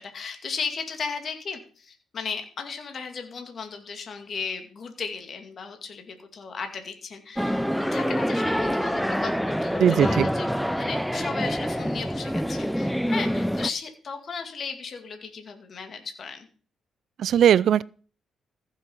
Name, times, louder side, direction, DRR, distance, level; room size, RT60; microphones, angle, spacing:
voice 1, 0.0-10.5 10.8-16.5, left 5 dB, 50° left, 2.3 m, -35 dB
sound 1, 7.4-13.7, equal, ahead, 0.5 m, -26 dB
voice 2, 9.8-10.3 17.2-17.8, right 9 dB, 65° right, 0.4 m, -19 dB
15.0 x 7.0 x 5.6 m
cardioid pair, 90°, 0 cm